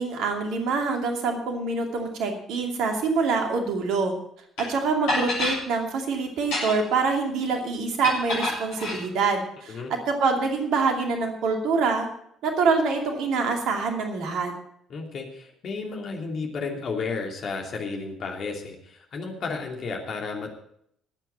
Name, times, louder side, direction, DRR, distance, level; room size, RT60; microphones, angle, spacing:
voice 1, 0.0-4.1 4.6-12.1 12.4-14.5, right 4 dB, 55° right, 3 dB, 2.6 m, -25 dB
sound 1, 4.6-4.7 5.1-5.6 6.4-7.0 8.0-9.0, left 2 dB, 65° left, 7.8 m, -27 dB
voice 2, 14.9-20.5, left 4 dB, 45° left, 1 dB, 2.9 m, -32 dB
22.0 x 9.1 x 4.3 m, 0.68 s
figure-of-eight pair, 50°, 0 cm